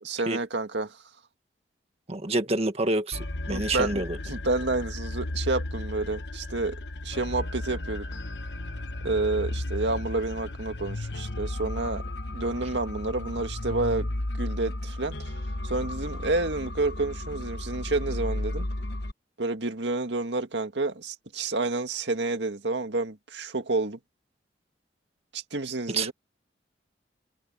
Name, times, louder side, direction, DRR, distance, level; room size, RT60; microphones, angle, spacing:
voice 1, 0.0-1.0 3.5-8.1 9.0-14.1 14.4-15.4 15.6-18.7 19.4-24.0 25.3-26.1, right 2 dB, 75° right, 2.0 m, -29 dB
voice 2, 2.1-4.2 25.9-26.1, right 2 dB, 35° right, 1.8 m, -27 dB
sound 1, 3.1-19.1, left 1 dB, 65° left, 1.3 m, -34 dB
head